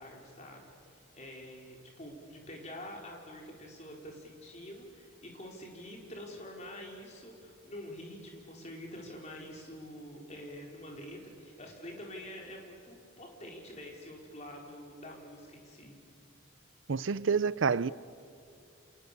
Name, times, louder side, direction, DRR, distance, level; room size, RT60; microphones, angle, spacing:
voice 1, 0.0-16.0, left 1 dB, 35° left, 4.6 m, -46 dB
voice 2, 16.9-17.9, right 5 dB, 65° right, 0.6 m, -28 dB
29.5 x 27.5 x 6.9 m
head